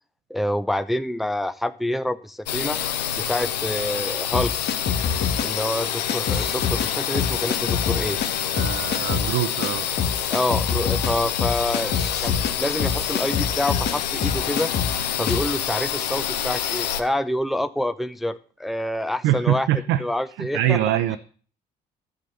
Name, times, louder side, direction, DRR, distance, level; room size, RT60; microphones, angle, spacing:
voice 1, 0.3-2.8 3.3-4.5 5.4-8.2 10.3-14.7 15.2-19.7 20.0-20.8, left 1 dB, ahead, 0.6 m, -27 dB
sound 1, 2.5-17.0, left 10 dB, 80° left, 0.8 m, -27 dB
sound 2, 4.3-5.5 6.1-6.9 7.1-8.3 8.6-9.3 9.6-9.7 10.0-13.9 14.2-15.0 15.3-15.5, left 7 dB, 55° left, 1.8 m, -26 dB
voice 2, 8.5-9.9 19.2-20.0 20.4-21.2, right 12 dB, 65° right, 0.8 m, -23 dB
12.0 x 7.6 x 6.7 m
figure-of-eight pair, 45°, 21 cm